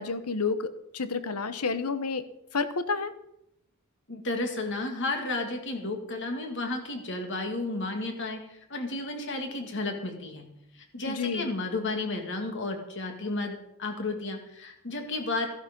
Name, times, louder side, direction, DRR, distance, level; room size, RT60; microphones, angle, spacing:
voice 1, 0.0-2.2 2.5-3.1 11.0-11.5, left 4 dB, 85° left, 12 dB, 1.0 m, -30 dB
voice 2, 4.1-8.4 8.7-10.5 10.9-15.5, left 2 dB, 55° left, 4 dB, 2.4 m, -32 dB
14.0 x 11.5 x 5.3 m, 0.82 s
head